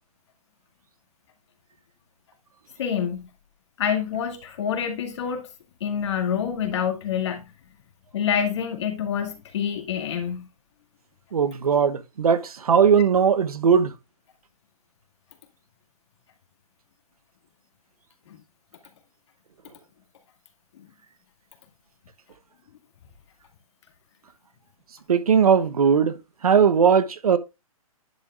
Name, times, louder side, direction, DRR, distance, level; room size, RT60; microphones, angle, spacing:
voice 1, 2.8-3.3 3.8-5.5 5.8-7.4 8.1-10.5 18.3-18.4, left 8 dB, 50° left, 2.2 m, -27 dB
voice 2, 11.3-13.9 25.1-26.1 26.4-27.4, right 7 dB, 80° right, 1.1 m, -19 dB
10.5 x 6.6 x 2.4 m
hypercardioid pair, 160°, 19 cm